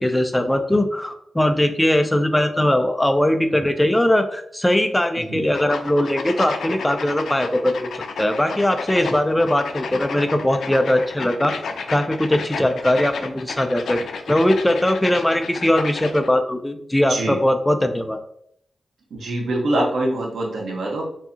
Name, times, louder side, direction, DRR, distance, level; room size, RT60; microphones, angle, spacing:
voice 1, 0.0-11.5 11.9-18.2, left 1 dB, 5° left, 6 dB, 0.4 m, -20 dB
sound 1, 5.5-16.3, left 5 dB, 85° left, 0.4 m, -32 dB
voice 2, 17.1-17.4 19.1-21.0, right 1 dB, 90° right, -2 dB, 1.0 m, -24 dB
4.7 x 2.7 x 2.7 m, 0.69 s
wide cardioid pair, 155°, 0 cm